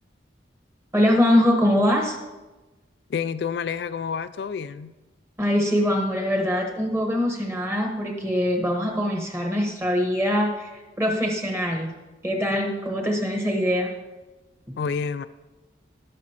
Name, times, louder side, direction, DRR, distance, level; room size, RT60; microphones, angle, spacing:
voice 1, 0.9-2.2 5.4-11.9 12.2-13.9 14.7-14.8, equal, 15° right, 2 dB, 1.1 m, -23 dB
voice 2, 3.1-4.9 14.8-15.3, left 6 dB, 60° left, 14 dB, 0.3 m, -29 dB
17.5 x 6.1 x 2.9 m, 1.1 s
head